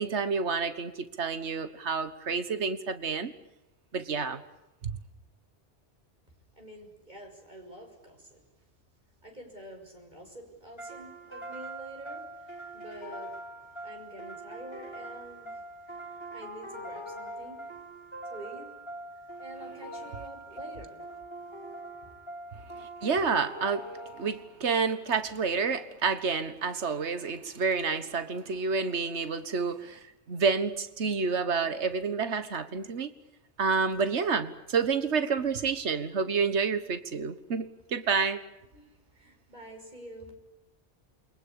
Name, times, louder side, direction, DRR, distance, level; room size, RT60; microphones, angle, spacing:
voice 1, 0.0-3.3 3.9-4.4 4.8-4.9 22.8-23.9 24.2-30.0 30.3-33.1 33.6-38.4, right 5 dB, 75° right, 11 dB, 1.8 m, -29 dB
voice 2, 6.6-8.4 9.2-13.3 13.7-17.7 18.2-18.7 19.1-21.0 22.0-22.1 38.7-40.3, right 1 dB, 40° right, 2 dB, 7.0 m, -47 dB
sound 1, 10.8-24.6, right 1 dB, 25° left, 3.3 m, -43 dB
29.0 x 23.5 x 8.7 m, 0.92 s
omnidirectional pair, 1.2 m